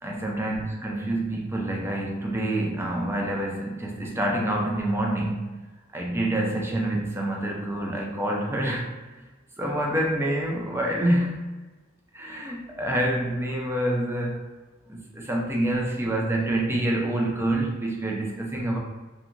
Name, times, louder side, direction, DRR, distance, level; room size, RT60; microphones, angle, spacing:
voice 1, 0.0-5.6 5.9-8.9 9.6-11.5 12.1-14.4 14.9-18.8, right 1 dB, 10° right, -1 dB, 0.4 m, -27 dB
2.8 x 2.2 x 2.5 m, 1.2 s
head